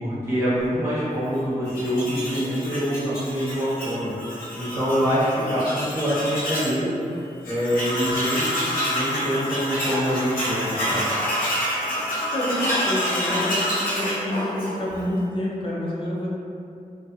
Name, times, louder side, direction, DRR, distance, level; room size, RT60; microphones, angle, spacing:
voice 1, 0.0-4.1 4.5-6.9 7.5-8.6 8.9-11.1, equal, 20° right, -12 dB, 1.1 m, -25 dB
Tools, 1.7-6.8 7.1-7.2 7.4-15.0, equal, 85° left, 0.7 m, -27 dB
voice 2, 12.3-16.3, left 1 dB, 35° left, -6 dB, 0.6 m, -28 dB
2.6 x 2.2 x 2.4 m, 2.5 s
wide cardioid pair, 85°, 14 cm